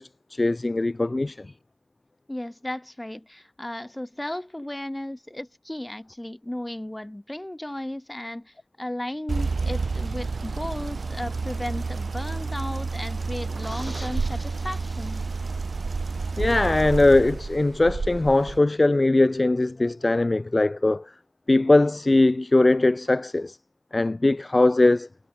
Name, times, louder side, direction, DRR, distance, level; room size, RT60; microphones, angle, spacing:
voice 1, 0.0-1.5 16.4-21.1 21.5-23.6 23.9-25.1, left 2 dB, 45° left, 0.4 m, -20 dB
voice 2, 2.3-15.4, left 1 dB, 20° left, 6.2 m, -35 dB
sound 1, 9.3-18.6, right 4 dB, 90° right, 2.5 m, -30 dB
wide cardioid pair, 40°, 0 cm